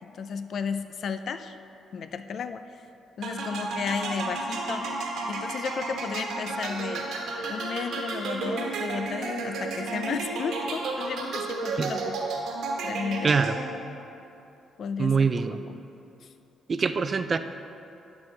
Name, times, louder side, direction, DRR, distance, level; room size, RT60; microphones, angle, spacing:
voice 1, 0.0-1.6 1.9-2.8 3.2-4.9 5.3-7.1 7.5-12.3 12.8-13.4 14.8-15.8 16.2-16.3, left 6 dB, 60° left, 10 dB, 0.4 m, -34 dB
sound 1, 3.2-13.9, right 3 dB, 75° right, 1.2 m, -32 dB
voice 2, 13.2-13.5 15.0-15.6 16.7-17.4, right 5 dB, 40° right, 10 dB, 0.3 m, -24 dB
12.0 x 6.2 x 3.3 m, 2.8 s
cardioid pair, 90°, 0 cm